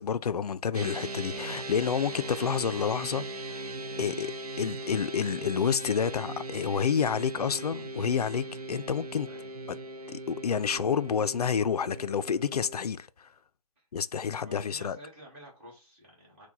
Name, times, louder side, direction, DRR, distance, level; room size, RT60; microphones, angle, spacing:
voice 1, 0.0-3.2 3.5-3.7 4.0-9.3 10.1-13.3 13.9-15.0, left 7 dB, 80° left, 0.4 m, -29 dB
sound 1, 0.7-12.9, right 1 dB, 75° right, 0.6 m, -39 dB
voice 2, 14.4-16.5, equal, 20° right, 1.6 m, -51 dB
4.5 x 2.2 x 3.9 m
hypercardioid pair, 165°, 19 cm